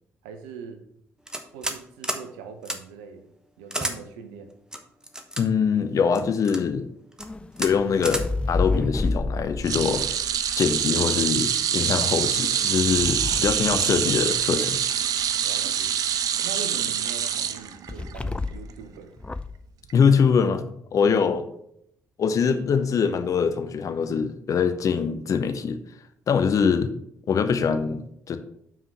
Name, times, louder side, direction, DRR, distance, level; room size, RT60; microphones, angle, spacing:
voice 1, 0.2-0.8 1.5-3.3 3.6-4.6 15.4-15.9 16.4-19.1 21.0-21.3, right 6 dB, 75° right, 6 dB, 0.9 m, -41 dB
sound 1, 1.3-1.8 2.0-2.2 2.6-2.8 3.7-4.0 4.7-5.4 6.1-6.6 7.1-7.3 7.6-7.7 8.0-8.2, right 1 dB, 10° right, 1.1 m, -30 dB
voice 2, 5.4-6.9 7.6-10.0 10.6-14.8 19.9-21.4 22.2-25.8 26.3-26.9 27.3-28.4, left 6 dB, 50° left, 9 dB, 0.8 m, -23 dB
sound 2, 7.2-11.3 12.3-14.6 17.9-18.8 19.2-19.6, left 3 dB, 15° left, 0.4 m, -31 dB
sound 3, 9.6-18.1 18.5-18.7 19.9-20.0, right 9 dB, 55° right, 0.5 m, -25 dB
5.8 x 4.8 x 6.0 m, 0.71 s
figure-of-eight pair, 45°, 8 cm